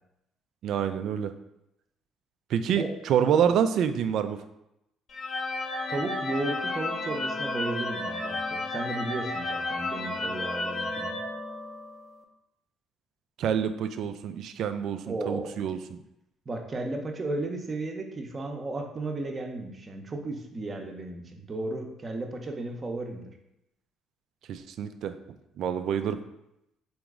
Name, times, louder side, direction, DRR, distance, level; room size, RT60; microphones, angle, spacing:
voice 1, 0.6-1.3 2.5-4.4 13.4-16.0 24.5-25.1 25.6-26.2, right 8 dB, 60° right, 10 dB, 0.3 m, -27 dB
sound 1, 5.1-12.1, left 2 dB, 45° left, 0.5 m, -32 dB
voice 2, 5.9-11.2 15.1-15.6 16.5-23.3, right 2 dB, 35° right, 4 dB, 0.7 m, -34 dB
3.8 x 2.9 x 3.6 m, 0.84 s
hypercardioid pair, 55°, 0 cm